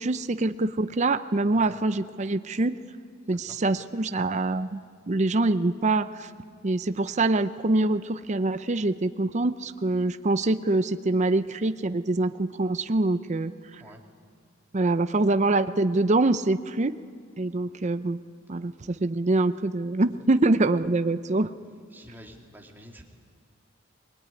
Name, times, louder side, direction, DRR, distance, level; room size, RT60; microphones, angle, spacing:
voice 1, 0.0-2.8 3.3-4.8 5.1-6.3 6.6-13.8 14.7-16.9 17.4-18.2 18.5-21.5, right 2 dB, 35° right, 11 dB, 0.6 m, -25 dB
voice 2, 21.9-23.0, equal, 10° right, 1 dB, 2.4 m, -47 dB
23.5 x 21.0 x 9.8 m, 2.1 s
head